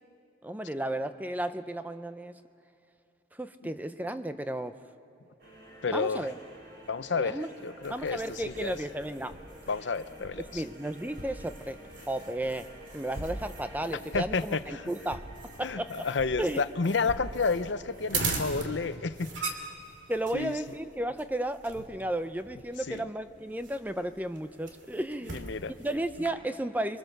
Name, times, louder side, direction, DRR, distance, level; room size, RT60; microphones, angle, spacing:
voice 1, 0.4-2.4 3.3-4.8 5.9-6.3 7.1-7.5 7.9-9.3 10.5-11.8 12.1-15.3 15.6-16.1 16.4-16.6 20.1-25.4 25.7-27.0, right 1 dB, 10° right, 10 dB, 0.5 m, -33 dB
sound 1, 5.4-18.9, equal, 55° right, 5.2 m, -51 dB
voice 2, 5.8-6.3 6.9-8.8 9.7-10.6 14.1-14.9 15.6-19.6 20.3-20.5 22.9-23.0 25.3-25.7, left 4 dB, 75° left, 13 dB, 0.7 m, -31 dB
sound 2, 7.8-26.3, right 3 dB, 75° right, 2.6 m, -41 dB
28.5 x 23.0 x 6.7 m, 2.7 s
head